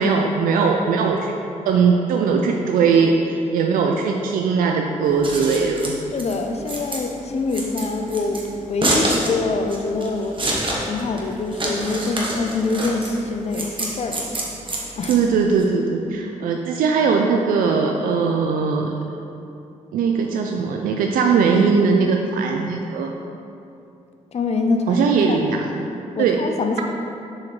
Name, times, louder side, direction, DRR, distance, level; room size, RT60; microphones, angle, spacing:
voice 1, 0.0-1.3 1.7-6.0 15.1-18.9 19.9-23.1 24.9-25.7 26.2-26.4, right 5 dB, 90° right, 2 dB, 0.4 m, -20 dB
Scissors, 5.0-15.6, right 1 dB, 35° right, 1.3 m, -27 dB
voice 2, 6.1-8.4 8.7-10.4 10.8-14.2 14.5-14.6 15.0-15.2 24.3-25.4 26.1-26.8, left 3 dB, 50° left, 5 dB, 0.6 m, -24 dB
7.0 x 5.0 x 3.1 m, 2.6 s
cardioid pair, 65°, 14 cm